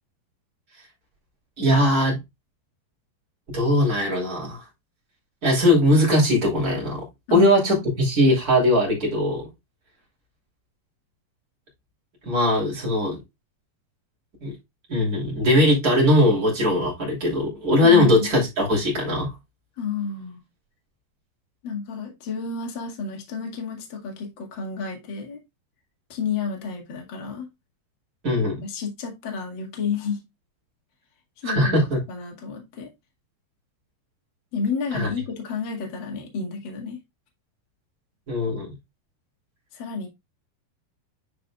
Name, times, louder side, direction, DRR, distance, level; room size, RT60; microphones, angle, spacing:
voice 1, 1.6-2.2 3.5-4.6 5.4-7.0 7.3-9.5 12.2-13.2 14.4-14.5 14.9-19.3 28.2-28.6 31.4-32.0 34.9-35.1 38.3-38.7, left 1 dB, 25° right, 2.7 m, -20 dB
voice 2, 7.3-7.8 17.8-18.3 19.8-20.4 21.6-25.4 26.1-27.5 28.6-30.2 31.4-31.8 32.1-32.9 34.5-37.0 39.7-40.1, left 5 dB, 45° left, 1.6 m, -30 dB
9.5 x 4.9 x 2.4 m
omnidirectional pair, 5.1 m